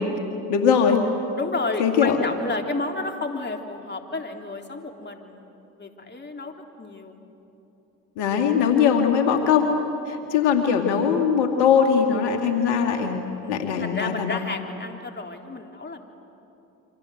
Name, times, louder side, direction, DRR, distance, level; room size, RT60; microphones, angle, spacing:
voice 1, 0.5-1.0 1.8-2.2 8.2-9.8 10.1-14.4, left 7 dB, 70° left, 4 dB, 2.4 m, -21 dB
voice 2, 1.4-5.5 5.7-7.2 10.2-10.5 13.4-16.0, left 3 dB, 25° left, 4 dB, 3.3 m, -31 dB
28.5 x 25.5 x 8.0 m, 2.9 s
hypercardioid pair, 60°, 42 cm